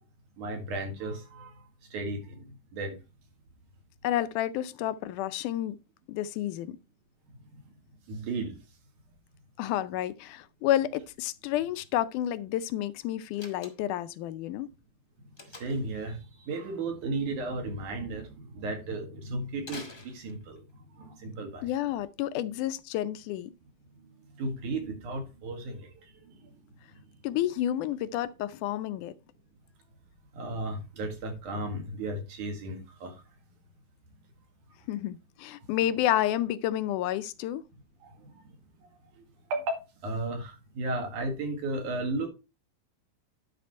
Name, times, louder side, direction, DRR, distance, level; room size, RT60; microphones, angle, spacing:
voice 1, 0.4-1.5 1.9-3.0 8.1-8.6 15.5-21.7 24.4-25.9 26.2-26.5 30.3-33.2 38.0-38.6 39.2-39.3 39.5-42.3, right 2 dB, 75° right, 3.5 m, -35 dB
voice 2, 4.0-5.8 6.1-6.8 9.6-14.7 21.6-23.5 27.2-29.1 34.9-37.6, left 12 dB, 80° left, 2.1 m, -30 dB
Slam, 13.3-14.1 15.4-15.9 19.6-20.7, left 3 dB, 25° left, 1.1 m, -46 dB
10.5 x 5.0 x 4.3 m
omnidirectional pair, 3.6 m